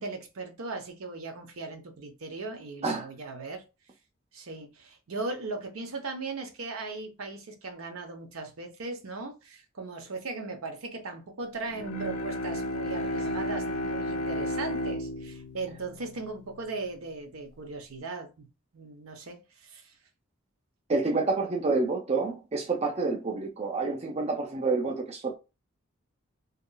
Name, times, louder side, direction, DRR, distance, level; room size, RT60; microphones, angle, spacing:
voice 1, 0.0-3.6 4.3-19.9, right 3 dB, 75° right, 0.7 m, -38 dB
Bowed string instrument, 11.7-17.1, left 1 dB, 80° left, 0.4 m, -33 dB
voice 2, 20.9-25.3, right 3 dB, 30° right, 0.5 m, -28 dB
2.8 x 2.3 x 2.2 m
head